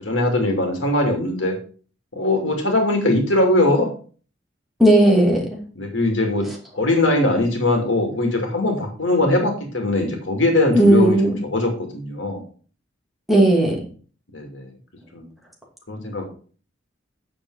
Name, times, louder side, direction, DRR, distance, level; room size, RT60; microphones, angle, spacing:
voice 1, 0.0-1.5 2.1-3.9 5.8-12.4 14.3-14.7 15.1-15.2 15.9-16.2, left 2 dB, 75° left, 3 dB, 2.5 m, -21 dB
voice 2, 4.8-5.6 10.7-11.4 13.3-13.8, right 1 dB, ahead, -2 dB, 2.5 m, -15 dB
8.9 x 6.7 x 4.8 m, 0.41 s
head